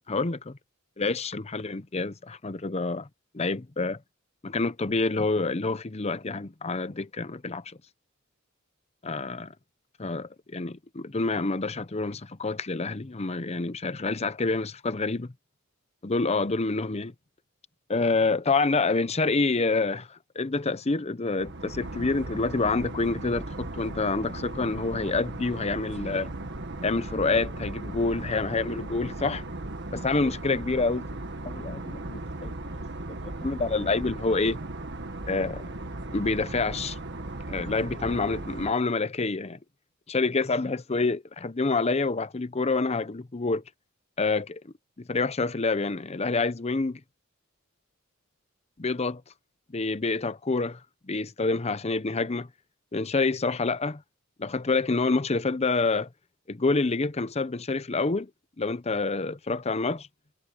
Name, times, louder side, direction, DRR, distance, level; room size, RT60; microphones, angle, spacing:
voice 1, 0.1-0.6 1.0-3.1 3.3-4.0 4.4-7.8 9.0-9.5 10.0-15.3 16.0-17.1 17.9-26.3 26.8-29.4 29.9-31.0 31.5-32.5 33.1-34.6 35.3-35.6 36.1-37.0 37.5-39.6 40.1-43.6 44.2-47.0 48.8-49.2 49.7-52.5 52.9-54.0 54.4-56.1 56.5-58.3 58.6-60.0, left 3 dB, 30° left, 0.7 m, -27 dB
sound 1, 21.4-38.7, right 2 dB, 55° right, 1.6 m, -37 dB
head